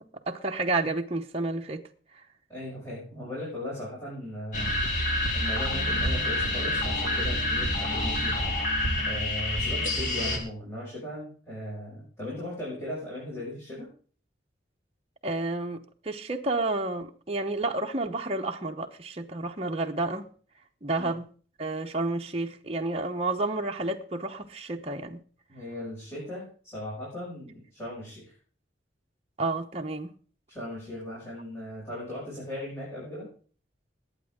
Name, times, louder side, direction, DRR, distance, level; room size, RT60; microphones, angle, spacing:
voice 1, 0.0-1.8 15.2-20.3 20.8-21.3 21.6-25.2 29.4-30.1, right 2 dB, 30° right, 0.8 m, -30 dB
voice 2, 2.5-4.8 5.3-8.6 9.0-13.9 21.0-21.1 25.5-28.3 30.5-33.3, left 1 dB, 15° left, 6.5 m, -38 dB
sound 1, 4.5-10.4, left 1 dB, 45° left, 2.6 m, -27 dB
20.0 x 8.8 x 3.6 m
head